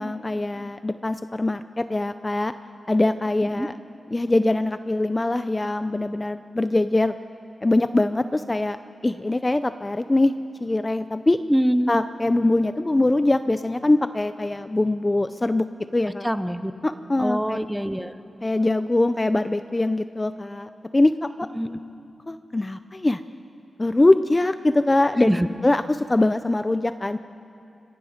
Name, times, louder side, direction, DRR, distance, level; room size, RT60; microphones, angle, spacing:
voice 1, 0.0-2.5 2.9-3.7 4.1-7.1 7.6-10.3 10.6-11.4 11.9-15.7 15.9-16.3 16.8-17.6 18.4-21.5 22.3-23.2 23.8-25.3 25.6-27.2, left 2 dB, 25° left, 11 dB, 0.5 m, -22 dB
voice 2, 11.5-11.9 16.2-16.7 17.2-18.2 21.6-21.8 25.3-25.5, equal, 5° right, 11 dB, 0.9 m, -23 dB
26.0 x 22.5 x 5.2 m, 2.6 s
wide cardioid pair, 80°, 0 cm